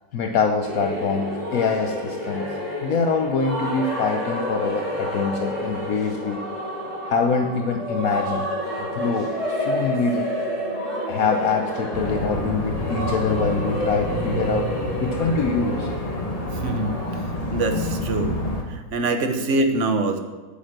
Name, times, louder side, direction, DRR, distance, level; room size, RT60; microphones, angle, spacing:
voice 1, 0.1-2.6 2.8-6.4 7.0-8.5 8.8-10.3 11.1-14.7 15.0-15.9 18.2-18.3, left 4 dB, 70° left, 4 dB, 1.3 m, -24 dB
sound 1, 0.6-17.2, left 1 dB, 20° right, 4.4 m, -29 dB
sound 2, 11.9-18.6, equal, 25° left, 1.4 m, -28 dB
voice 2, 16.5-16.9 17.5-18.4 18.7-20.2, right 2 dB, 50° right, 7 dB, 1.5 m, -24 dB
9.3 x 9.0 x 7.6 m, 1.3 s
omnidirectional pair, 1.6 m